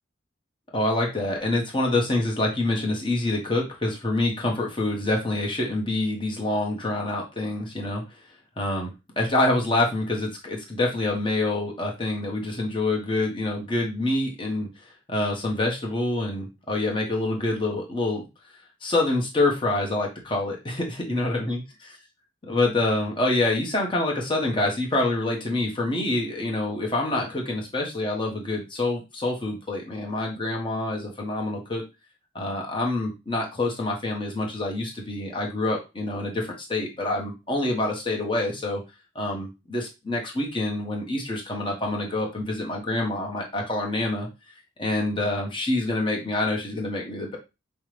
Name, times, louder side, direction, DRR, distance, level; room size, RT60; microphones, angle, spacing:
voice 1, 0.7-8.0 8.6-8.9 9.2-14.7 15.1-18.2 18.8-21.6 22.4-31.8 32.3-38.8 39.1-44.3 44.8-47.4, left 2 dB, 25° left, 0 dB, 0.9 m, -26 dB
5.4 x 2.1 x 3.2 m, 0.26 s
head